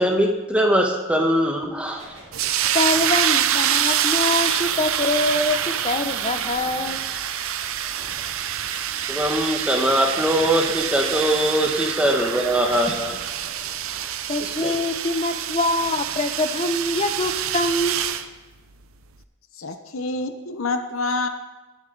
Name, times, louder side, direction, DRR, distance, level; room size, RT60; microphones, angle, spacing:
voice 1, 0.0-2.0 9.1-13.2 14.4-14.7, equal, 5° right, 1 dB, 1.2 m, -21 dB
sound 1, 1.9-9.4 9.8-11.4 11.7-14.0, right 1 dB, 35° right, 4.9 m, -44 dB
sound 2, 2.3-18.3, right 10 dB, 70° right, 0.6 m, -26 dB
voice 2, 2.7-7.0 14.3-18.1, left 2 dB, 30° left, 8 dB, 0.7 m, -24 dB
voice 3, 19.5-21.3, left 3 dB, 65° left, 7 dB, 0.9 m, -27 dB
19.0 x 7.8 x 4.0 m, 1.2 s
head